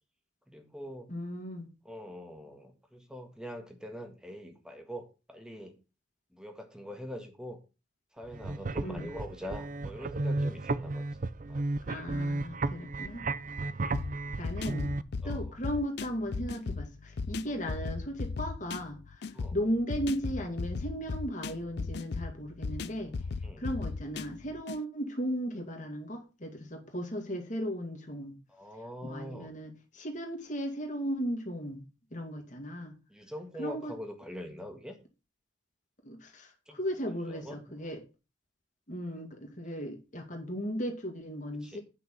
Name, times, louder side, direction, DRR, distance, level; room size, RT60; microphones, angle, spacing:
voice 1, 0.5-1.1 1.8-5.8 6.3-7.6 8.1-11.0 11.5-12.0 13.6-13.9 15.2-15.5 17.5-17.6 19.3-19.6 23.4-23.6 28.5-29.5 33.1-35.0 36.7-36.8 37.3-37.8 41.6-41.8, equal, 5° right, 1.5 m, -43 dB
voice 2, 1.1-1.7 8.8-9.1 11.9-13.3 14.4-15.0 15.2-23.1 23.6-28.4 29.0-32.9 33.6-33.9 36.0-38.0 38.9-41.8, equal, 40° left, 2.2 m, -36 dB
sound 1, 8.2-15.0, right 2 dB, 40° right, 0.4 m, -33 dB
sound 2, 13.9-24.8, left 4 dB, 55° left, 0.4 m, -37 dB
8.8 x 5.9 x 5.8 m
head